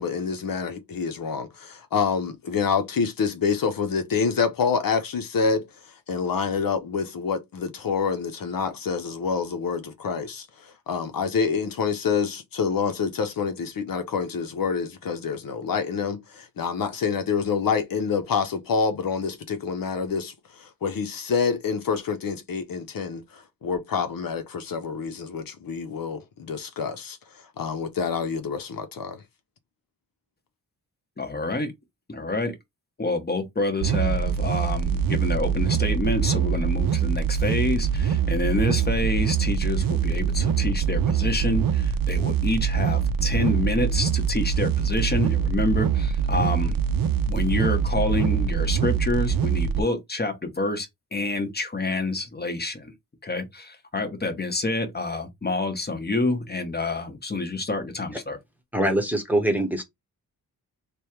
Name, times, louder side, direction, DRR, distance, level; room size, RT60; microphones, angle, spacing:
voice 1, 0.0-5.7 6.1-29.2, left 5 dB, 70° left, 0.8 m, -27 dB
voice 2, 31.2-31.7 32.1-32.5 33.0-46.8 47.3-52.9 53.2-58.4, left 2 dB, 25° left, 1.1 m, -28 dB
sound 1, 33.8-49.8, right 7 dB, 70° right, 0.6 m, -24 dB
voice 3, 58.7-59.8, right 1 dB, 5° right, 1.0 m, -23 dB
3.3 x 2.2 x 4.3 m
wide cardioid pair, 100°, 36 cm